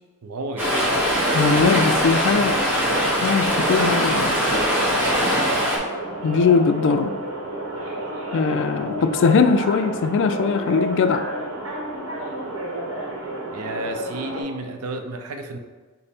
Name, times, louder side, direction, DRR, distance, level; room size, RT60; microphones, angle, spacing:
voice 1, 0.2-0.8 7.8-7.9 9.0-9.1 13.5-15.6, right 2 dB, 85° right, 5 dB, 0.5 m, -32 dB
Stream, 0.6-5.8, equal, 10° right, 0.9 m, -21 dB
sound 1, 0.6-14.4, right 1 dB, 70° right, 0.9 m, -31 dB
voice 2, 1.3-2.6 3.2-4.4 6.2-7.1 8.3-11.2, left 5 dB, 55° left, 9 dB, 0.3 m, -20 dB
5.1 x 2.0 x 4.3 m, 1.3 s
head